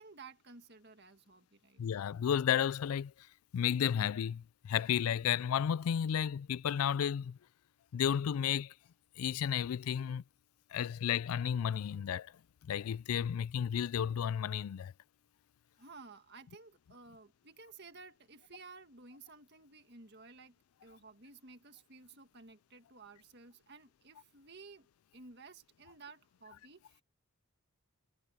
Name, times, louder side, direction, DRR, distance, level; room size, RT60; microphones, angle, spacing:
voice 1, 0.0-1.8 15.8-20.5 20.8-24.9 25.1-27.0, right 4 dB, 50° right, 1.8 m, -54 dB
voice 2, 1.8-3.1 3.5-7.4 7.9-8.7 9.2-10.2 10.7-12.3 12.6-14.9, left 9 dB, 80° left, 0.4 m, -32 dB
head